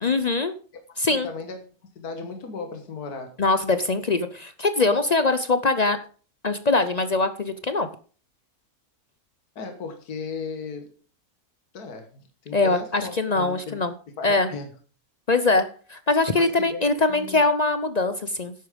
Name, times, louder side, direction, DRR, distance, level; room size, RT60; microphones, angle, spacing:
voice 1, 0.0-0.5 1.0-1.3 3.4-6.0 6.4-7.9 12.5-13.9 14.2-14.5 15.3-18.5, left 3 dB, 55° left, 11 dB, 0.4 m, -22 dB
voice 2, 1.1-1.6 2.0-3.4 9.6-10.9 11.7-13.8 14.2-14.7 16.4-17.4, left 4 dB, 75° left, 5 dB, 2.0 m, -36 dB
11.0 x 8.6 x 5.1 m, 0.40 s
omnidirectional pair, 1.6 m